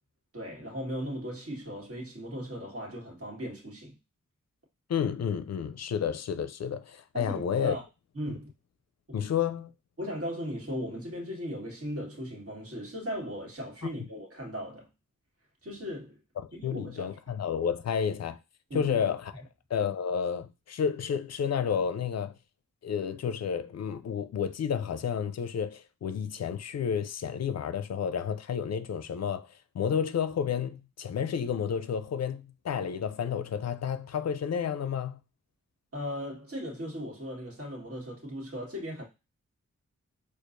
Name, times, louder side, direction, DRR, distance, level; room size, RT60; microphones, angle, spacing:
voice 1, 0.3-4.0 7.1-7.8 8.2-8.5 9.1-9.2 10.0-14.9 15.6-16.2 16.5-17.2 18.7-19.0 35.9-39.0, equal, 50° right, 1.7 m, -37 dB
voice 2, 4.9-7.8 9.1-9.7 16.4-18.4 18.7-19.3 19.7-22.3 22.8-35.2, left 7 dB, 60° left, 0.4 m, -31 dB
4.4 x 2.4 x 2.5 m
cardioid pair, 45°, 30 cm